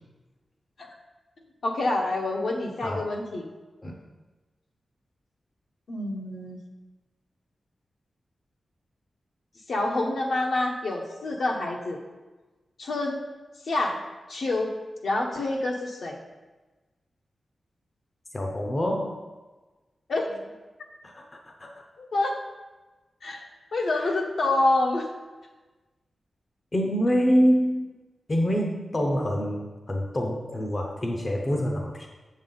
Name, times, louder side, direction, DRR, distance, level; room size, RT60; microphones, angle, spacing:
voice 1, 1.6-3.4 5.9-6.6 9.7-12.0 12.8-13.2 13.6-14.0 14.3-14.7 15.0-16.2 20.1-20.5 22.0-22.3 23.2-25.1, left 2 dB, 65° left, 0 dB, 1.2 m, -27 dB
voice 2, 18.3-19.2 21.0-21.2 21.6-21.7 23.9-24.1 26.7-27.9 28.3-32.1, equal, 25° left, 2 dB, 0.7 m, -26 dB
7.5 x 7.3 x 3.9 m, 1.2 s
wide cardioid pair, 155°, 0 cm